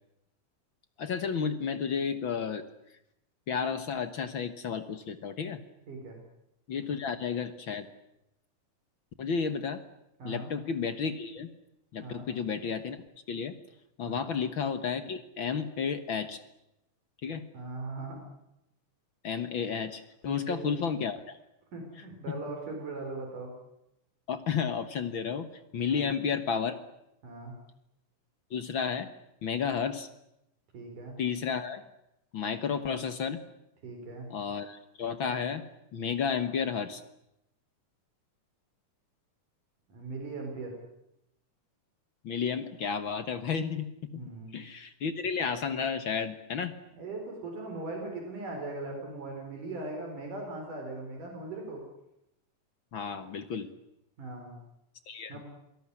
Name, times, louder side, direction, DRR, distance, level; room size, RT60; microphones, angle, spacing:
voice 1, 1.0-2.6 3.5-5.6 6.7-7.9 9.2-9.8 10.2-11.5 11.9-13.5 14.0-16.4 17.2-17.5 19.2-21.4 24.3-25.5 25.7-26.8 28.5-29.1 29.4-30.1 31.2-31.8 32.3-33.4 34.3-35.6 35.9-37.0 42.2-44.2 44.5-46.7 52.9-53.7 55.1-55.4, left 6 dB, 55° left, 11 dB, 1.5 m, -32 dB
voice 2, 10.2-10.5 12.0-12.3 14.1-14.3 17.5-18.2 20.3-20.8 21.7-23.5 25.8-26.0 27.2-27.5 30.7-31.2 33.8-34.3 39.9-40.7 44.1-44.6 47.0-51.8 54.2-54.6 55.3-55.4, right 3 dB, 70° right, 2 dB, 6.1 m, -39 dB
27.0 x 18.0 x 9.8 m, 0.84 s
omnidirectional pair, 3.7 m